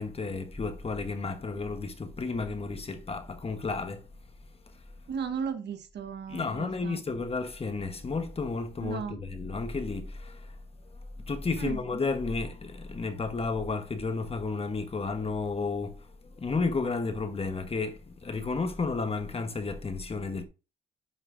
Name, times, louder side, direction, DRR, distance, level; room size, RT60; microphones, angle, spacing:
voice 1, 0.0-4.1 6.3-10.6 11.2-20.5, left 4 dB, 30° left, 1.2 m, -32 dB
voice 2, 5.1-7.0 8.8-9.2 11.6-11.8, right 6 dB, 60° right, 1.3 m, -35 dB
11.0 x 5.4 x 2.6 m
cardioid pair, 90°, 20 cm